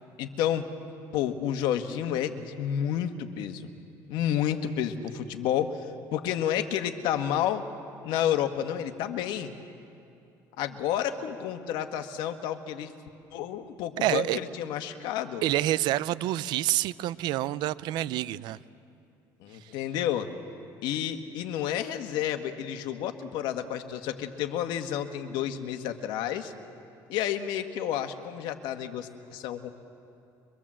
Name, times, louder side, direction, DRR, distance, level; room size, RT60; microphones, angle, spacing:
voice 1, 0.2-0.6 1.1-3.7 4.1-7.6 8.0-9.5 10.6-12.9 13.3-15.4 19.4-20.3 20.8-26.5 27.1-29.7, left 10 dB, 75° left, 7 dB, 1.5 m, -30 dB
voice 2, 14.0-14.4 15.4-18.6, right 14 dB, 70° right, 17 dB, 0.6 m, -27 dB
24.0 x 23.0 x 7.6 m, 2.7 s
cardioid pair, 130°, 8 cm